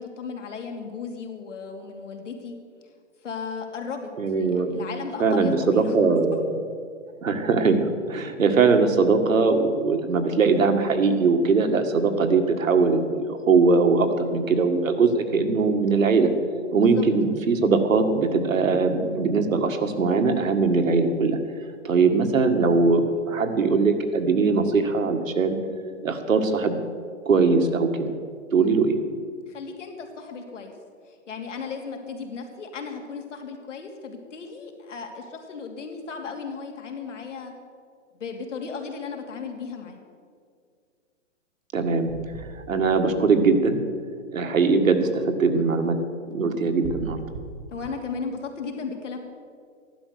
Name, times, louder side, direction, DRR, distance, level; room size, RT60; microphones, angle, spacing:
voice 1, 0.0-2.6 3.2-6.4 16.7-17.0 28.5-28.8 29.5-30.7 31.0-37.5 38.2-40.0 47.7-49.2, left 5 dB, 65° left, 3 dB, 2.8 m, -36 dB
voice 2, 4.2-4.8 5.2-6.6 7.2-7.8 8.1-16.3 16.7-21.4 21.8-25.6 26.0-26.8 27.3-28.1 28.5-28.9 41.7-42.2 42.5-43.8 44.3-46.0 46.3-47.2, right 4 dB, 90° right, 6 dB, 1.9 m, -21 dB
sound 1, 42.1-43.9 46.8-47.9, right 4 dB, 45° right, 1.2 m, -40 dB
14.5 x 11.5 x 6.6 m, 2.1 s
hypercardioid pair, 165°, 39 cm